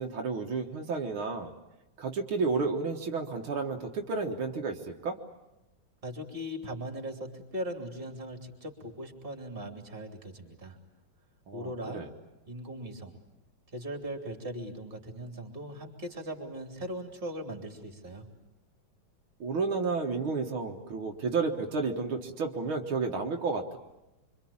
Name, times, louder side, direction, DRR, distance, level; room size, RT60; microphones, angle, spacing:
voice 1, 0.0-1.5 2.0-5.2 11.5-12.1 19.4-23.8, right 4 dB, 80° right, 2 dB, 2.3 m, -31 dB
voice 2, 6.0-10.8 11.5-12.0 12.5-13.2 13.7-18.2, equal, 25° right, 3 dB, 3.3 m, -39 dB
26.0 x 25.5 x 8.7 m, 0.99 s
omnidirectional pair, 2.3 m